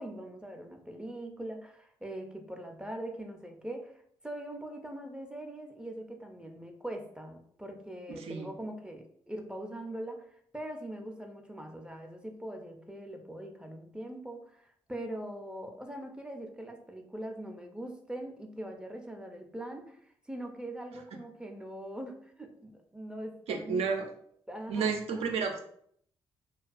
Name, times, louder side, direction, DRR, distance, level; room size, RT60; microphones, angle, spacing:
voice 1, 0.0-23.9 24.5-25.0, right 1 dB, 10° right, 3 dB, 0.5 m, -42 dB
voice 2, 8.2-8.5 23.5-24.1 24.7-25.6, right 5 dB, 70° right, 4 dB, 0.5 m, -31 dB
2.3 x 2.3 x 2.4 m, 0.65 s
supercardioid pair, 50°, 10 cm